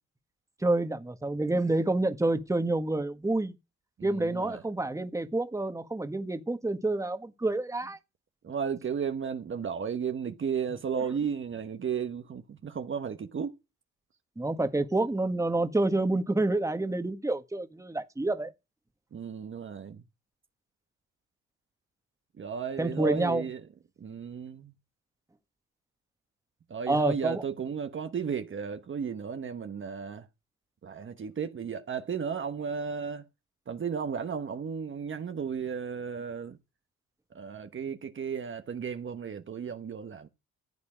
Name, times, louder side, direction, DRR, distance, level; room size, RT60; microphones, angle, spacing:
voice 1, 0.6-3.6 4.0-8.0 14.4-18.5 22.8-23.4 26.9-27.4, right 2 dB, 10° right, 1.6 m, -28 dB
voice 2, 4.0-4.6 8.4-13.5 19.1-20.0 22.4-23.6 24.0-24.7 26.7-30.3 30.8-33.2 33.7-36.6 37.3-40.3, right 6 dB, 40° right, 1.2 m, -34 dB
14.5 x 8.4 x 5.0 m
cardioid pair, 90°, 30 cm